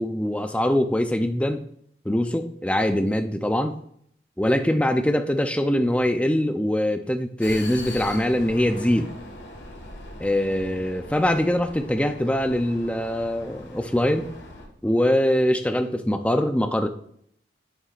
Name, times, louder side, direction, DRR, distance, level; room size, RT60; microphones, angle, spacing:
voice 1, 0.0-1.6 2.0-3.8 4.4-9.1 10.2-14.3 14.8-16.9, left 1 dB, 5° left, 0.5 m, -23 dB
Vehicle, 7.4-14.7, left 2 dB, 85° left, 1.6 m, -41 dB
8.9 x 7.0 x 2.5 m
head